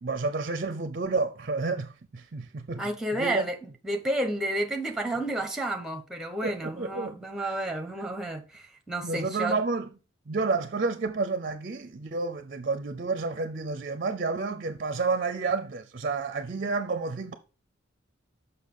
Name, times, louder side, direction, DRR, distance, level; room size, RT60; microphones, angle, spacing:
voice 1, 0.0-2.9 3.2-3.4 6.4-7.2 7.4-7.6 9.0-9.9 10.3-17.4, right 4 dB, 45° right, 0.5 m, -30 dB
voice 2, 2.8-9.6, right 1 dB, 5° right, 0.9 m, -31 dB
6.6 x 5.6 x 3.7 m
head